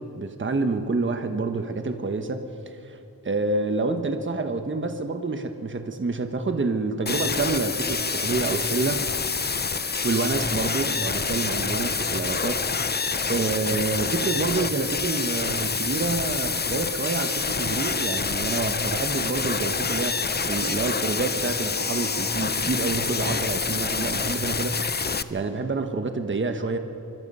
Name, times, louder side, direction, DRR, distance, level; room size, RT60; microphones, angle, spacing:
voice 1, 0.0-2.4 2.7-9.1 10.0-13.0 13.3-20.2 20.4-24.9 25.3-26.8, right 3 dB, 35° right, 6 dB, 1.3 m, -28 dB
sound 1, 7.1-25.2, left 5 dB, 30° left, 0.7 m, -27 dB
26.0 x 24.0 x 5.6 m, 2.9 s
wide cardioid pair, 120°, 35 cm